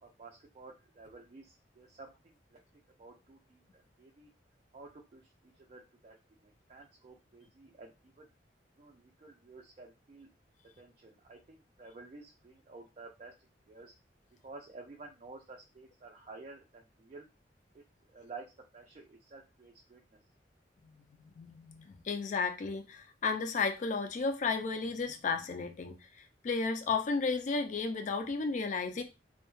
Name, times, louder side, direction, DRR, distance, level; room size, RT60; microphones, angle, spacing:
voice 1, 0.0-2.6 3.0-4.3 4.7-6.1 6.4-8.3 8.8-10.3 10.8-13.3 13.7-13.9 14.4-17.3 18.1-20.2, right 3 dB, 40° right, 0.3 m, -52 dB
voice 2, 20.8-29.0, left 4 dB, 45° left, 0.4 m, -33 dB
2.2 x 2.0 x 3.0 m
head